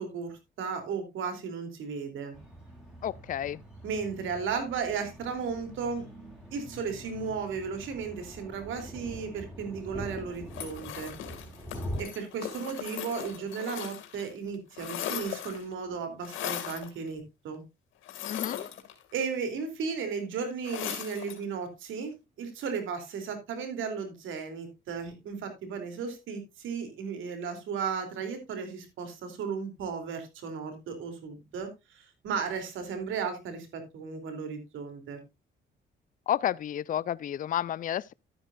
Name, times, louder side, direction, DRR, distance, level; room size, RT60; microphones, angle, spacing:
voice 1, 0.0-2.4 3.8-6.1 6.5-11.2 12.0-17.6 19.1-35.2, right 5 dB, 80° right, 3.2 m, -35 dB
sound 1, 2.3-12.0, equal, 5° right, 7.1 m, -43 dB
voice 2, 3.0-3.6 18.3-18.7 36.3-38.1, left 10 dB, 45° left, 0.4 m, -31 dB
sound 2, 10.5-14.3 14.5-15.7 16.2-16.9 18.0-19.2 20.6-21.4, left 11 dB, 90° left, 2.3 m, -38 dB
12.0 x 9.9 x 2.5 m
cardioid pair, 90°, 20 cm